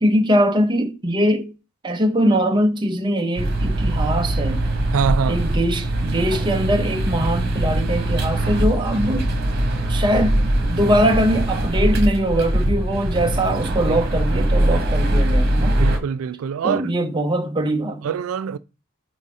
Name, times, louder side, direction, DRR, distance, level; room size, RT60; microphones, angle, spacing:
voice 1, 0.0-1.5 1.8-4.6 5.3-9.3 9.9-15.8 16.6-18.0, equal, 20° right, 0.8 m, -21 dB
sound 1, 3.4-16.0, right 1 dB, 45° right, 1.4 m, -21 dB
voice 2, 4.9-5.4 13.9-14.1 15.8-16.8 18.0-18.6, right 7 dB, 80° right, 0.3 m, -24 dB
4.9 x 4.1 x 4.8 m
head